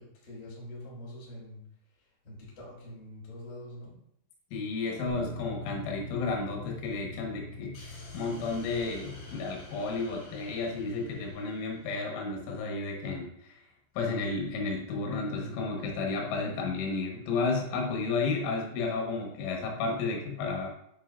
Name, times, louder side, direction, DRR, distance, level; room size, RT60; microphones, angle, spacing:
voice 1, 0.0-1.6 2.0-4.0, left 1 dB, 35° left, -6 dB, 2.4 m, -45 dB
voice 2, 4.5-7.8 8.1-13.6 14.0-20.7, left 3 dB, 80° left, 0 dB, 3.6 m, -32 dB
Bass guitar, 5.1-11.3, left 1 dB, 75° right, 3.4 m, -45 dB
sound 1, 7.7-12.1, left 2 dB, 60° left, 3.9 m, -50 dB
10.0 x 5.2 x 2.4 m, 0.73 s
omnidirectional pair, 5.5 m